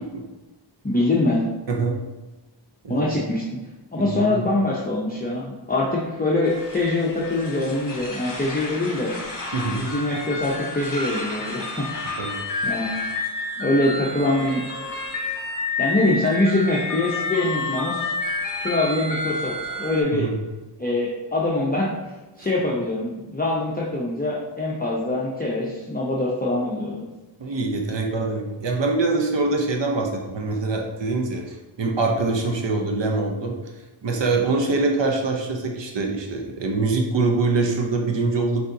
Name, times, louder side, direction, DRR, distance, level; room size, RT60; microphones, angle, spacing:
voice 1, 0.8-1.4 2.9-3.6 3.9-9.1 9.7-11.9 12.6-12.9 13.6-14.6 15.8-18.2 18.6-19.5 19.8-20.3 20.8-21.9 22.4-27.1, left 2 dB, 20° left, -4 dB, 0.7 m, -24 dB
voice 2, 1.7-2.0 2.8-3.1 4.0-4.4 9.5-9.9 12.2-12.4 20.1-20.4 22.4-22.5 27.4-33.5 34.0-38.7, right 3 dB, 70° right, 1 dB, 0.8 m, -24 dB
sound 1, 6.4-20.0, left 2 dB, 45° left, 1.1 m, -30 dB
6.3 x 2.7 x 2.7 m, 1.2 s
wide cardioid pair, 50°, 45 cm